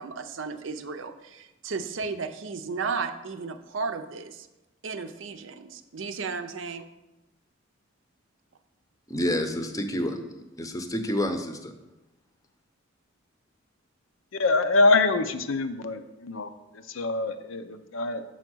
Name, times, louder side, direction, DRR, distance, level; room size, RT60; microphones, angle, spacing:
voice 1, 0.0-4.5 4.8-6.9, right 4 dB, 70° right, 9 dB, 0.6 m, -34 dB
voice 2, 9.1-10.2 10.6-11.7, equal, 15° left, 7 dB, 0.7 m, -28 dB
voice 3, 14.4-18.2, left 3 dB, 75° left, 9 dB, 0.6 m, -25 dB
6.3 x 5.6 x 6.1 m, 1.0 s
head